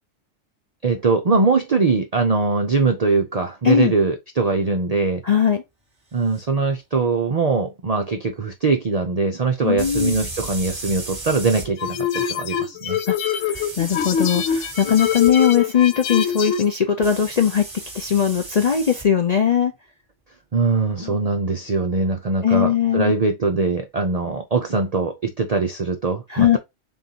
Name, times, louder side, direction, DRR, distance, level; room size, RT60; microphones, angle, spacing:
voice 1, 0.8-5.2 6.1-13.0 20.5-26.6, right 4 dB, 60° right, 0.4 m, -22 dB
voice 2, 5.2-5.6 9.6-10.1 13.1-13.2 13.4-17.7 17.9-19.7 21.0-21.2 22.4-23.1 26.3-26.6, left 8 dB, 55° left, 0.4 m, -19 dB
sound 1, 6.3-6.4 9.8-11.7 13.5-15.3 17.0-19.1, right 2 dB, 20° right, 1.2 m, -35 dB
sound 2, 11.8-16.7, left 8 dB, 70° left, 0.9 m, -24 dB
3.9 x 3.6 x 2.7 m
omnidirectional pair, 1.4 m